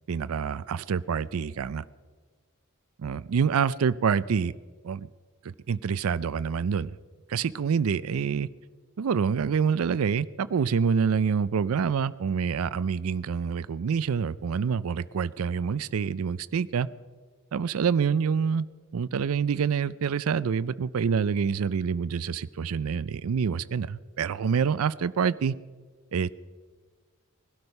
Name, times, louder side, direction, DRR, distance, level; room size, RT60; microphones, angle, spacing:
voice 1, 0.1-1.8 3.0-4.5 4.8-5.1 5.4-6.9 7.3-8.5 9.0-16.9 17.5-18.7 18.9-25.5 26.1-26.3, right 6 dB, 90° right, 16 dB, 0.4 m, -26 dB
19.5 x 12.5 x 5.4 m, 1.4 s
head